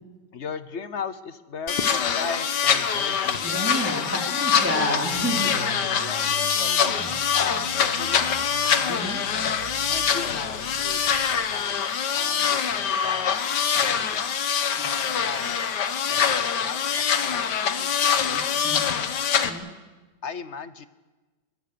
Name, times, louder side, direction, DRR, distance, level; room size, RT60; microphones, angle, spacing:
voice 1, 0.3-3.7 4.2-4.3 4.9-5.2 5.4-6.8 7.3-8.3 9.9-11.9 12.1-13.4 13.8-14.6 15.2-16.9 17.2-18.4 20.2-20.9, left 6 dB, 50° left, 13 dB, 1.1 m, -37 dB
sound 1, 1.7-19.5, left 7 dB, 75° left, 1.8 m, -24 dB
voice 2, 3.4-5.5 6.9-7.2 8.9-9.2 14.8-14.9 18.3-18.9 19.5-19.7, left 1 dB, 10° right, -1 dB, 3.0 m, -30 dB
sound 2, 4.8-11.5, right 6 dB, 85° right, 2.2 m, -41 dB
24.0 x 22.0 x 6.9 m, 1.2 s
omnidirectional pair, 1.8 m